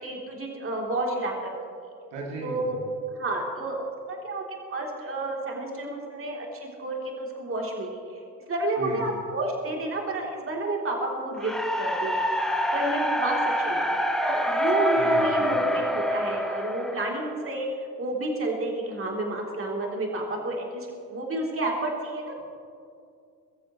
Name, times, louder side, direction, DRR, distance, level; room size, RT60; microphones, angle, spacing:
voice 1, 0.0-1.5 2.4-2.8 3.2-4.4 4.7-8.2 8.5-12.3 12.7-14.0 14.3-22.3, right 1 dB, 25° right, -1 dB, 3.4 m, -30 dB
voice 2, 2.1-2.8 8.8-9.1 14.9-15.7, right 2 dB, 60° right, -2 dB, 3.0 m, -36 dB
sound 1, 11.4-17.5, equal, ahead, 1.5 m, -26 dB
23.0 x 14.0 x 3.2 m, 2.4 s
figure-of-eight pair, 60°, 50 cm